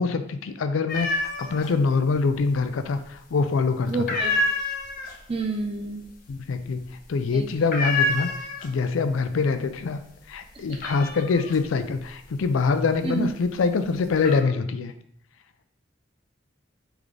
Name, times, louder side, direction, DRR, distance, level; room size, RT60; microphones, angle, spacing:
voice 1, 0.0-3.9 6.3-8.3 8.6-10.0 10.3-14.9, left 4 dB, 85° left, 9 dB, 0.4 m, -24 dB
sound 1, 0.9-1.7 2.0-2.8 3.1-3.5 3.9-9.0 9.3-9.8 10.2-13.3 13.8-14.4, left 2 dB, 50° left, 0.7 m, -28 dB
voice 2, 3.9-4.3 5.3-6.0 7.3-7.7 13.0-13.3, right 3 dB, 30° right, 3 dB, 0.6 m, -29 dB
3.8 x 3.5 x 3.3 m, 0.68 s
head